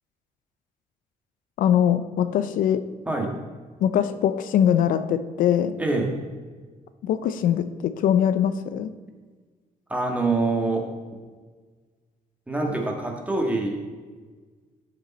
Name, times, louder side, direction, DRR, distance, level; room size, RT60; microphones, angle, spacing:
voice 1, 1.6-2.8 3.8-5.7 7.0-8.9, left 9 dB, 85° left, 11 dB, 0.6 m, -22 dB
voice 2, 5.8-6.1 9.9-10.9 12.5-13.8, right 2 dB, 10° right, 1 dB, 1.6 m, -25 dB
12.5 x 6.6 x 4.2 m, 1.4 s
cardioid pair, 135°, 14 cm